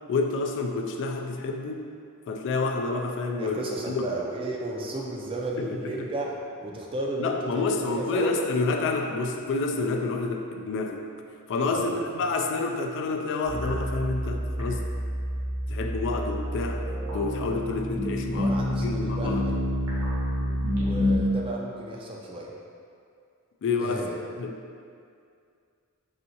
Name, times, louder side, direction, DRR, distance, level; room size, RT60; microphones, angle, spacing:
voice 1, 0.1-1.9 2.3-3.6 3.9-4.1 5.6-5.7 7.2-11.1 11.5-14.9 15.7-16.8 17.1-19.4 23.6-24.0 24.4-24.6, left 3 dB, 55° left, 3 dB, 0.3 m, -28 dB
voice 2, 3.4-8.3 11.7-12.2 18.4-19.6 20.7-22.5 23.8-24.2, right 2 dB, 25° right, -2 dB, 0.4 m, -34 dB
sound 1, 13.4-21.2, equal, 80° right, 1.2 m, -28 dB
4.1 x 3.5 x 2.8 m, 2.3 s
head